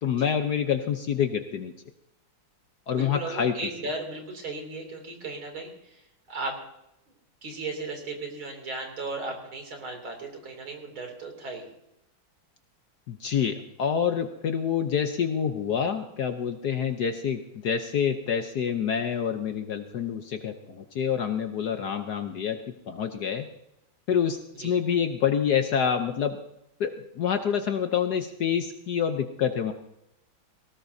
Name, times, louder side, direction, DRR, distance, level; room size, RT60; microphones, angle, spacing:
voice 1, 0.0-1.7 2.9-3.6 13.1-23.5 24.1-26.4 26.8-29.7, left 8 dB, 60° left, 7 dB, 1.2 m, -27 dB
voice 2, 2.9-6.0 6.3-6.6 7.4-11.7 24.6-24.7, right 3 dB, 70° right, 3 dB, 3.7 m, -36 dB
19.0 x 18.0 x 2.7 m, 0.85 s
omnidirectional pair, 2.3 m